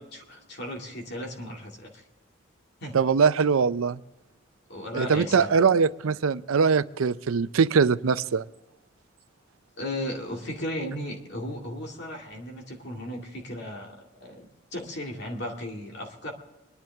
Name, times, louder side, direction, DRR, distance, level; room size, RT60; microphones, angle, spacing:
voice 1, 0.0-2.0 2.8-3.0 4.7-5.6 9.8-16.3, left 1 dB, 55° left, 1 dB, 2.3 m, -36 dB
voice 2, 2.9-4.0 4.9-8.4, right 5 dB, 80° right, 15 dB, 0.5 m, -22 dB
23.0 x 10.5 x 3.5 m, 1.1 s
head